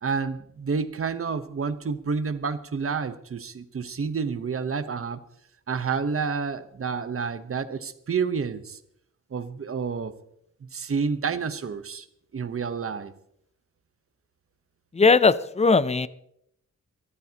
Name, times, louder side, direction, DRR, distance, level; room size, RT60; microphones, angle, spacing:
voice 1, 0.0-5.2 5.7-8.8 9.3-10.1 10.6-12.1 12.3-13.1, right 5 dB, 45° right, 11 dB, 1.0 m, -29 dB
voice 2, 15.0-16.1, left 4 dB, 20° left, 16 dB, 0.5 m, -19 dB
24.5 x 14.0 x 2.9 m, 0.73 s
wide cardioid pair, 145°, 31 cm